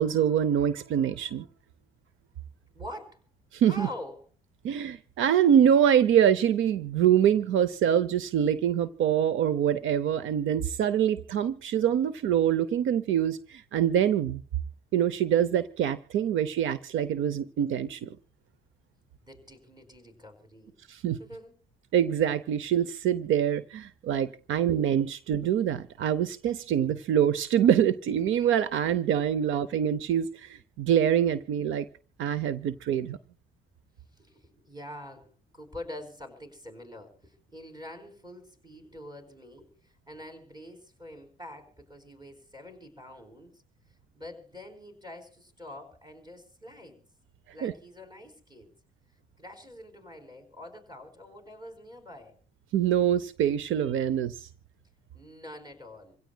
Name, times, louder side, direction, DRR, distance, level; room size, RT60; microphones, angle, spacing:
voice 1, 0.0-1.5 3.5-3.9 4.6-14.4 14.9-18.2 20.9-21.2 21.9-31.9 32.2-33.2 47.6-47.7 52.7-54.5, right 9 dB, 80° right, 0.8 m, -25 dB
voice 2, 2.7-3.2 3.6-4.3 19.2-20.8 21.2-21.5 29.4-29.5 34.1-43.6 44.1-47.0 47.5-48.7 49.4-52.4 55.1-56.2, left 1 dB, 20° right, 4.8 m, -45 dB
27.0 x 16.5 x 2.3 m
cardioid pair, 90°, 20 cm